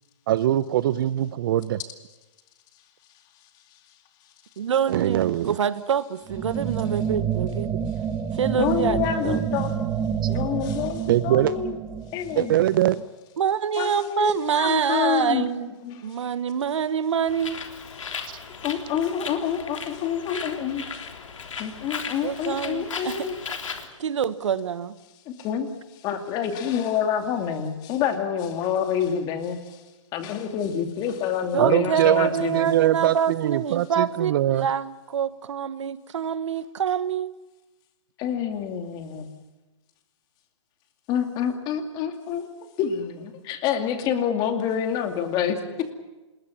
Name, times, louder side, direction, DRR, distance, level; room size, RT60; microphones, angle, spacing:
voice 1, 0.3-1.8 4.9-5.5 11.1-11.5 12.4-13.0 31.6-32.3 32.5-34.7, right 13 dB, 45° right, 16 dB, 0.7 m, -22 dB
voice 2, 4.6-7.7 8.3-9.4 13.4-15.7 16.0-17.6 22.2-23.3 24.0-25.0 31.5-37.3, right 8 dB, 70° right, 14 dB, 1.3 m, -26 dB
sound 1, 6.3-13.0, right 8 dB, 15° right, 1.6 m, -28 dB
voice 3, 8.6-9.7 10.3-11.7 12.1-12.6 13.8-15.5 15.8-16.0 18.6-20.8 21.6-23.4 25.3-25.7 26.0-29.8 30.1-32.7 38.2-39.3 41.1-42.5 42.8-45.9, left 8 dB, 25° left, 6 dB, 2.5 m, -27 dB
Bird, 17.3-23.9, left 5 dB, 80° left, 3.4 m, -36 dB
26.5 x 21.0 x 7.2 m, 1.1 s
hypercardioid pair, 150°, 16 cm